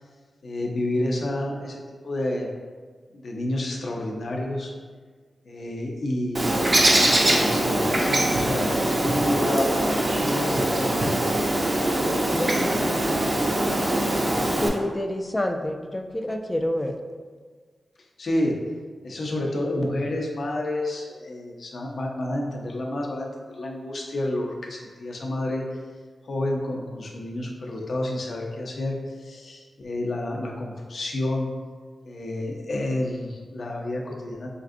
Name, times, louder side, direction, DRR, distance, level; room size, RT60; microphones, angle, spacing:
voice 1, 0.4-2.5 3.1-4.7 5.4-9.8 10.0-10.9 18.2-18.7 19.0-25.6 26.2-31.5 32.0-34.5, left 1 dB, 65° left, -1 dB, 0.6 m, -29 dB
Bird, 6.3-14.7, right 1 dB, 45° right, 0.5 m, -22 dB
voice 2, 12.3-13.2 14.5-16.9, left 1 dB, 20° left, 4 dB, 0.3 m, -28 dB
4.5 x 2.5 x 2.5 m, 1.5 s
cardioid pair, 65°, 0 cm